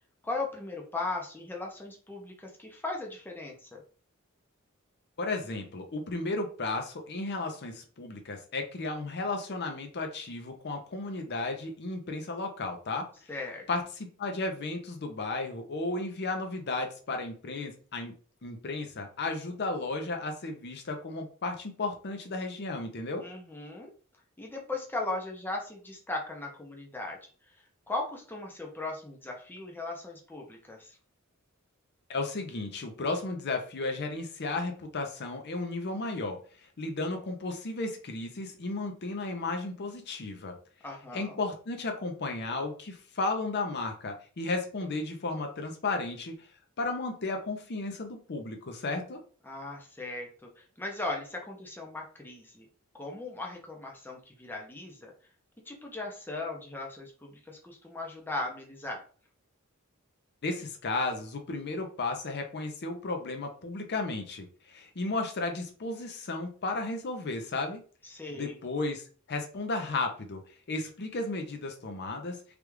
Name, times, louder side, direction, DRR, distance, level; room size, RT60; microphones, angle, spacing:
voice 1, 0.2-3.8 13.3-13.7 23.2-23.9 24.4-27.2 27.9-31.0 40.8-41.4 49.4-52.7 52.9-55.1 55.7-59.0 68.0-68.6, left 2 dB, 10° left, 0 dB, 0.6 m, -38 dB
voice 2, 5.2-13.1 13.7-18.1 18.4-23.2 32.1-36.4 36.8-40.6 41.1-46.4 46.8-49.2 60.4-67.8 68.3-70.4 70.7-72.4, left 3 dB, 50° left, 4 dB, 0.6 m, -34 dB
3.4 x 2.4 x 3.1 m, 0.40 s
head